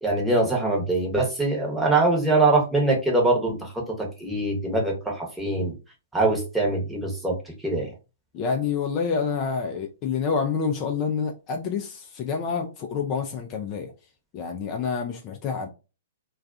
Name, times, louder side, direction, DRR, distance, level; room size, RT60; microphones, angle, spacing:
voice 1, 0.0-3.7 4.0-5.7 6.1-7.3 7.6-7.9, right 2 dB, 5° right, 0.9 m, -23 dB
voice 2, 8.3-13.9 14.3-15.7, left 5 dB, 35° left, 0.4 m, -28 dB
2.3 x 2.3 x 2.5 m
hypercardioid pair, 115°, 0 cm